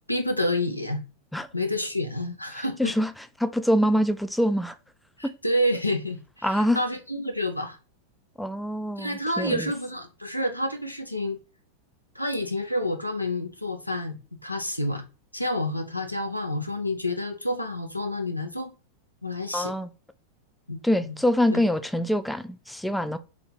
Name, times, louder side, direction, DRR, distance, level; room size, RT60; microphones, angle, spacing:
voice 1, 0.1-1.0 1.5-2.9 5.2-7.8 9.0-11.4 12.1-15.0 15.3-18.7 19.2-19.7 20.7-21.2 21.5-21.6, left 1 dB, 90° left, 0.6 m, -29 dB
voice 2, 2.6-4.8 6.4-6.8 8.4-9.7 19.5-19.9 20.8-23.2, equal, 5° left, 0.3 m, -25 dB
4.2 x 2.8 x 4.2 m
figure-of-eight pair, 90°, 0 cm